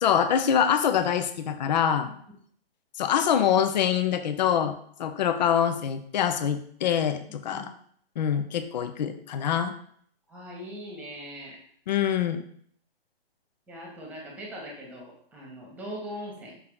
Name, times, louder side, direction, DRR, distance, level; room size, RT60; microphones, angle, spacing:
voice 1, 0.0-2.1 3.0-7.7 8.2-9.7 11.9-12.4, left 8 dB, 45° left, 9 dB, 0.6 m, -25 dB
voice 2, 7.3-7.7 10.3-11.6 13.7-16.6, equal, 5° right, -1 dB, 1.8 m, -41 dB
6.1 x 5.5 x 3.9 m, 0.63 s
figure-of-eight pair, 135°, 31 cm